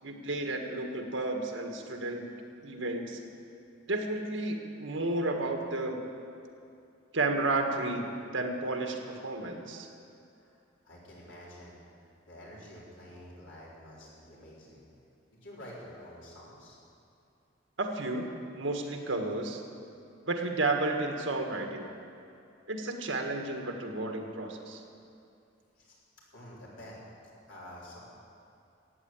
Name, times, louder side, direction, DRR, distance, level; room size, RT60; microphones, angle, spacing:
voice 1, 0.0-2.3 2.6-3.2 3.9-6.0 7.1-8.1 8.3-9.9 17.8-18.3 18.5-19.6 20.3-21.9 22.7-24.8, right 2 dB, 80° right, 3 dB, 1.7 m, -32 dB
voice 2, 10.8-11.8 12.3-14.9 15.3-16.8 25.8-26.0 26.3-27.0 27.5-28.0, equal, 75° left, -6 dB, 4.4 m, -49 dB
14.5 x 9.0 x 8.9 m, 2.6 s
head